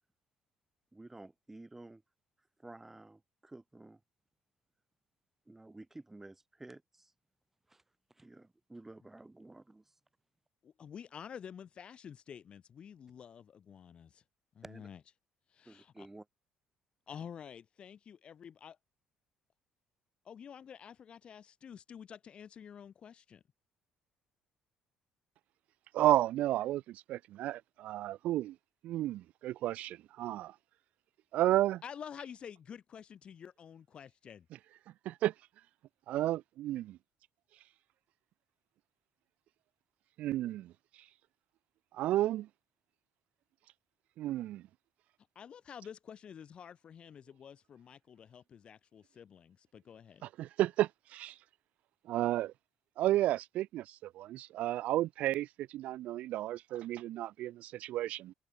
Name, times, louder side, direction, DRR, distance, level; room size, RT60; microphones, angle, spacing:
voice 1, 0.9-2.0 2.6-4.0 5.5-7.1 7.7-7.8 8.1-9.9 14.6-14.9 15.6-16.3, right 2 dB, 10° right, 2.6 m, -52 dB
voice 2, 10.6-14.2 14.5-15.0 15.5-16.1 17.1-18.7 20.2-23.4 31.8-34.5 45.3-50.3, left 8 dB, 45° left, 1.4 m, -49 dB
voice 3, 25.9-28.5 28.8-30.5 31.3-31.8 35.1-35.3 36.1-37.0 40.2-40.7 41.9-42.5 44.2-44.6 50.2-51.3 52.1-52.5 53.0-58.3, right 14 dB, 70° right, 0.7 m, -32 dB
cardioid pair, 100°, 2 cm